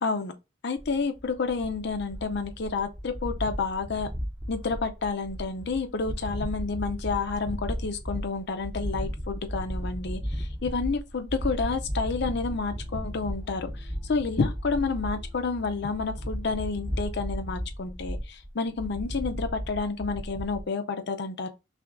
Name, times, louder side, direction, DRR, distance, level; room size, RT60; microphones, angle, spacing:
voice 1, 0.0-0.3 0.6-4.1 4.5-21.5, left 4 dB, 60° left, 0.6 m, -30 dB
sound 1, 0.8-20.6, equal, 20° right, 0.8 m, -35 dB
sound 2, 11.8-17.1, left 3 dB, 60° right, 1.4 m, -46 dB
5.8 x 2.8 x 2.6 m
head